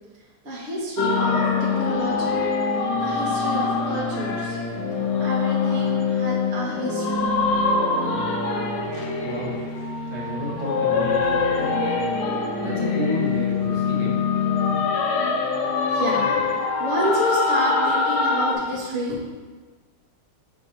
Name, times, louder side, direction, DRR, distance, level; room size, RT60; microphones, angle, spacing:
voice 1, 0.4-2.4 3.0-4.6 5.2-7.2 15.9-19.3, equal, 35° right, -7 dB, 1.7 m, -29 dB
sound 1, 1.0-18.5, left 4 dB, 80° left, 1.8 m, -24 dB
voice 2, 9.2-9.6 10.1-11.7 12.6-14.2, equal, 55° right, -6 dB, 2.1 m, -31 dB
8.5 x 3.7 x 5.3 m, 1.4 s
omnidirectional pair, 2.3 m